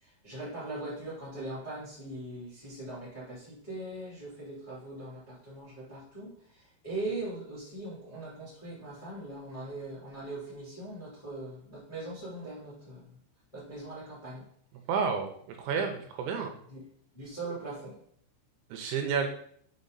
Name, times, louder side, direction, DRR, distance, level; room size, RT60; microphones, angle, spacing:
voice 1, 0.0-13.1 13.5-14.5 16.7-16.8 17.1-18.0, right 2 dB, 10° left, -9 dB, 1.9 m, -40 dB
voice 2, 14.9-16.5 18.7-19.3, right 6 dB, 80° right, 4 dB, 3.1 m, -30 dB
6.9 x 5.3 x 4.0 m, 0.63 s
omnidirectional pair, 5.5 m